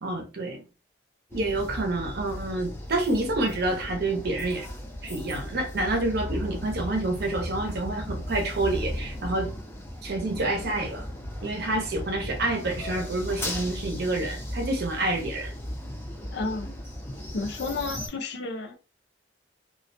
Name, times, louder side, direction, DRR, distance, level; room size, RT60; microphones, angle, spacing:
voice 1, 0.0-0.6 1.3-4.6 5.0-9.5 10.0-11.0 11.4-15.5, right 2 dB, 60° right, 0.6 m, -28 dB
sound 1, 1.3-18.1, left 1 dB, 15° left, 0.5 m, -36 dB
voice 2, 16.3-16.7 17.3-18.8, left 3 dB, 65° left, 0.5 m, -31 dB
2.3 x 2.1 x 2.5 m
head